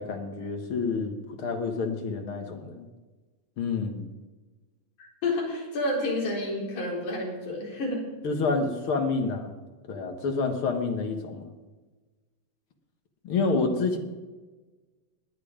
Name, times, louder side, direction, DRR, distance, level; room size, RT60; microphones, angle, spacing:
voice 1, 0.0-2.9 3.6-4.1 8.2-9.5 9.9-11.5 13.2-14.0, left 4 dB, 50° left, 4 dB, 1.9 m, -28 dB
voice 2, 5.0-8.0, left 2 dB, 65° left, -3 dB, 5.4 m, -30 dB
20.0 x 9.4 x 5.1 m, 1.3 s
omnidirectional pair, 3.7 m